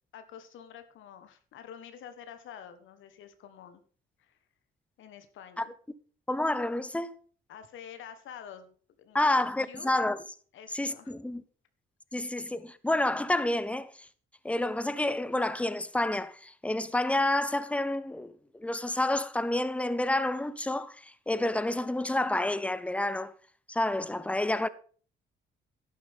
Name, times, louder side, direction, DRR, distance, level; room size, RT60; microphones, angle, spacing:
voice 1, 0.1-3.8 4.2-4.4 5.0-5.7 7.5-9.4 9.7-9.9 10.5-11.1, left 8 dB, 80° left, 1.3 m, -48 dB
voice 2, 6.3-7.1 9.1-10.2 10.7-11.4 12.1-14.1 14.4-23.3 23.7-24.7, left 1 dB, 5° left, 0.7 m, -29 dB
11.5 x 9.5 x 3.5 m
cardioid pair, 90°, 20 cm